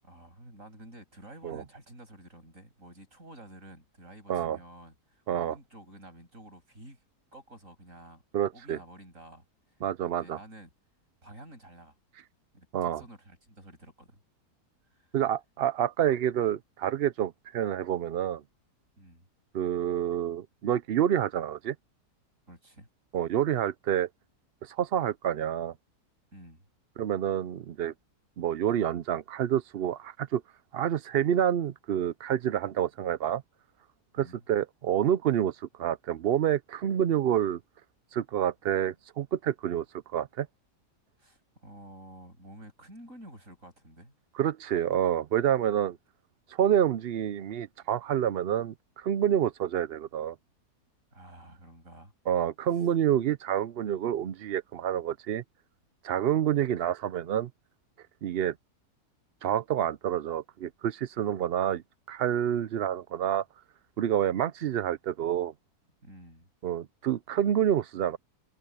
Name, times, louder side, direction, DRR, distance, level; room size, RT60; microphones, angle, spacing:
voice 1, 0.0-7.0 7.3-8.2 8.5-9.4 10.0-10.7 11.2-11.9 12.5-14.2 14.9-15.1 19.0-19.3 22.5-22.9 26.3-26.7 34.2-34.4 41.2-44.1 51.1-52.1 66.0-66.5, right 1 dB, 55° right, 8.1 m, -50 dB
voice 2, 8.3-8.8 9.8-10.4 12.7-13.0 15.1-18.4 19.5-21.7 23.1-24.1 24.6-25.7 27.0-27.9 28.4-30.4 30.7-33.4 34.2-37.6 38.1-39.8 40.1-40.5 44.4-46.0 46.5-50.4 52.3-55.4 56.0-57.5 58.2-58.5 59.4-63.4 64.0-65.5 66.6-68.2, right 10 dB, 75° right, 0.5 m, -28 dB
omnidirectional pair, 1.7 m